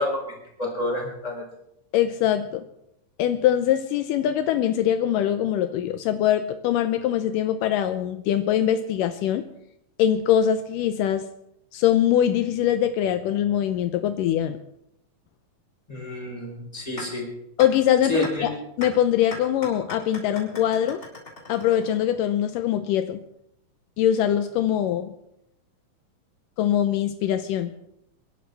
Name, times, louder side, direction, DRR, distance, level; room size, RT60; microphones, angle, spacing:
voice 1, 0.0-1.4 15.9-17.3 18.1-18.5, left 1 dB, 10° left, -1 dB, 4.2 m, -29 dB
voice 2, 1.9-2.7 3.2-9.5 10.0-11.3 11.7-14.6 17.6-18.5 18.8-21.0 21.5-23.2 24.0-25.1 26.6-27.7, left 10 dB, 80° left, 9 dB, 2.3 m, -22 dB
sound 1, 17.0-17.1 17.6-17.7 18.2-18.3 18.8-18.9 19.3-22.2, left 2 dB, 25° left, 6.2 m, -37 dB
28.5 x 11.0 x 3.4 m, 0.79 s
omnidirectional pair, 3.9 m